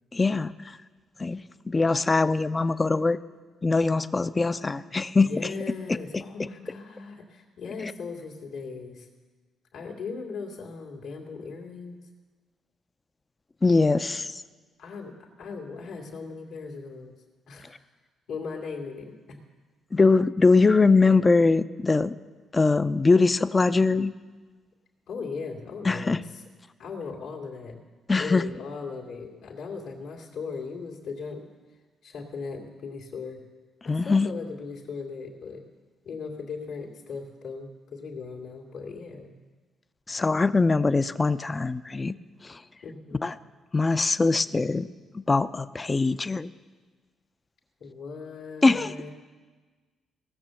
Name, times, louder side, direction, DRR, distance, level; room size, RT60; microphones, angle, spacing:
voice 1, 0.1-0.8 1.2-3.2 3.6-5.3 6.4-6.5 13.6-14.4 19.9-22.2 22.5-24.1 25.8-26.2 28.1-28.5 33.9-34.3 40.1-42.2 42.4-42.6 43.2-43.3 43.7-44.9 45.1-46.5 48.6-48.9, left 3 dB, 25° left, 13 dB, 0.5 m, -22 dB
voice 2, 5.2-9.1 9.7-12.0 14.8-17.2 17.5-17.8 18.3-19.4 25.1-26.4 26.8-27.8 28.2-31.5 32.0-33.4 33.8-35.6 36.0-39.3 42.8-43.2 47.8-49.1, left 4 dB, 80° left, 0 dB, 2.3 m, -38 dB
17.0 x 6.8 x 7.6 m, 1.4 s
cardioid pair, 90°, 0 cm